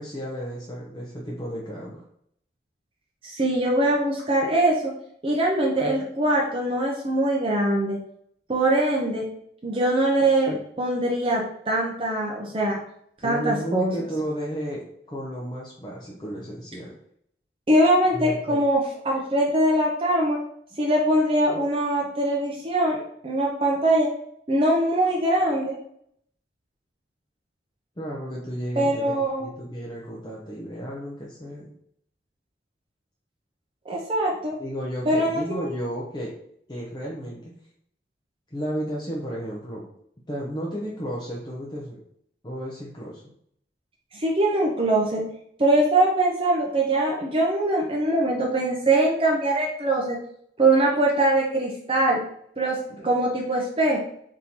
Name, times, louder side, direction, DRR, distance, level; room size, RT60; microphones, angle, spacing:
voice 1, 0.0-2.0 13.2-16.9 18.1-18.6 28.0-31.7 34.6-36.3 36.7-37.5 38.5-39.9 40.3-42.0 42.4-43.2, equal, 25° left, -4 dB, 0.6 m, -33 dB
voice 2, 3.2-4.8 5.2-8.0 8.5-9.3 9.6-12.8 13.2-13.9 17.7-20.4 20.8-24.1 24.5-25.8 28.8-29.5 33.9-34.5 35.1-35.7 44.1-45.2 45.6-50.2 50.6-52.2 52.6-54.0, right 1 dB, 30° right, -2 dB, 0.6 m, -22 dB
4.0 x 3.7 x 2.9 m, 0.69 s
head